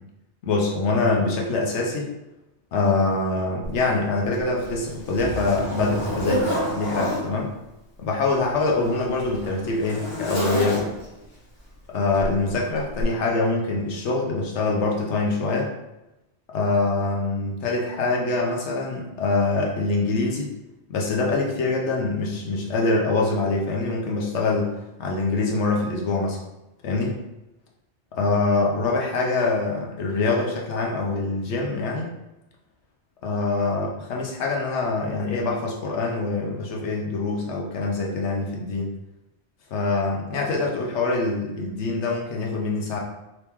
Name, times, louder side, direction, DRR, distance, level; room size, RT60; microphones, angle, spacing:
voice 1, 0.4-2.1 2.7-7.5 8.0-10.9 11.9-15.7 16.5-20.5 20.9-24.7 25.0-26.4 26.8-27.2 28.1-32.1 33.2-38.9 39.7-43.0, left 3 dB, 80° left, 0 dB, 1.0 m, -24 dB
Zipper (clothing), 3.6-3.7 4.3-7.3 8.2-11.2 12.2-12.4 13.0-13.1, equal, 45° left, 1.3 m, -29 dB
2.9 x 2.9 x 3.5 m, 0.96 s
omnidirectional pair, 1.2 m